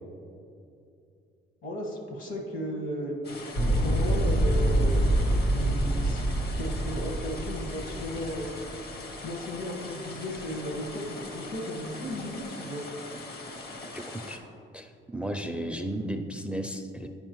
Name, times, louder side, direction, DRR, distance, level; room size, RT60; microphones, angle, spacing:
voice 1, 1.6-3.2 3.8-5.1 5.5-6.2 6.5-8.5 9.2-12.8, equal, 70° left, 1 dB, 1.5 m, -35 dB
sound 1, 3.2-14.4, left 3 dB, 55° left, 0.8 m, -42 dB
sound 2, 3.5-8.7, right 1 dB, 85° left, 1.6 m, -26 dB
voice 2, 13.9-14.4 14.7-17.1, right 1 dB, 5° right, 5 dB, 0.4 m, -34 dB
10.0 x 5.0 x 3.0 m, 2.6 s
cardioid pair, 90°, 20 cm